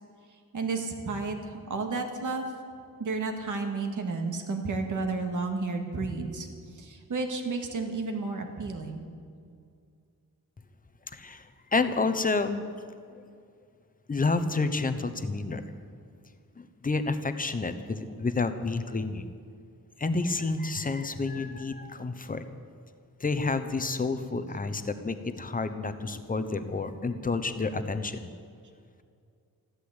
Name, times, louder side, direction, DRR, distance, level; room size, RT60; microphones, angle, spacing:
voice 1, 0.5-2.5 3.0-9.1, right 3 dB, 55° right, 4 dB, 2.0 m, -32 dB
voice 2, 11.1-12.6 14.1-15.6 16.6-19.3 20.0-22.4 23.2-28.3, left 3 dB, 25° left, 10 dB, 0.9 m, -29 dB
14.5 x 12.0 x 8.1 m, 2.3 s
wide cardioid pair, 165°, 36 cm